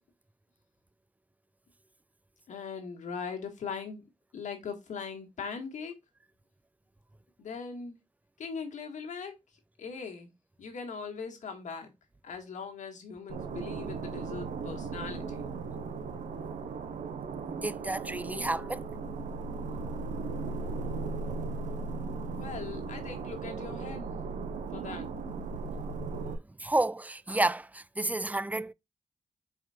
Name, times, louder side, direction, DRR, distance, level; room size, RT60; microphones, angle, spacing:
voice 1, 2.5-4.0 4.3-5.9 7.4-8.0 8.4-9.3 9.8-10.3 10.6-11.9 12.2-15.5 22.3-24.1 24.7-25.1, left 5 dB, 80° left, 2.0 m, -40 dB
sound 1, 13.3-26.4, right 4 dB, 85° right, 0.9 m, -37 dB
voice 2, 17.6-18.8 26.6-28.7, right 2 dB, 10° right, 0.4 m, -30 dB
5.0 x 4.3 x 4.4 m
cardioid pair, 70°, 12 cm